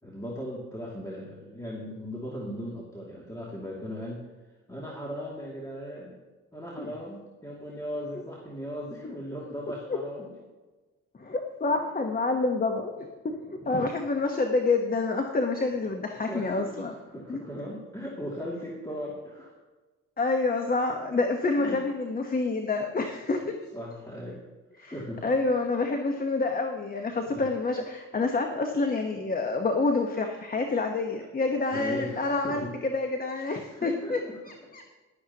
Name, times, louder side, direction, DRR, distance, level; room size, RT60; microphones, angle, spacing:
voice 1, 0.0-4.3 4.7-6.2 6.5-10.3 13.7-13.8 16.2-19.5 21.6-21.8 23.7-24.4 24.8-25.3 27.2-27.5 31.7-32.8 33.6-34.4, equal, 10° left, -4 dB, 2.6 m, -38 dB
voice 2, 11.2-16.9 17.3-17.4 20.2-23.4 24.8-24.9 25.2-34.2 34.7-34.9, left 3 dB, 30° left, 4 dB, 1.2 m, -28 dB
15.0 x 12.0 x 3.0 m, 1.2 s
cardioid pair, 90°, 30 cm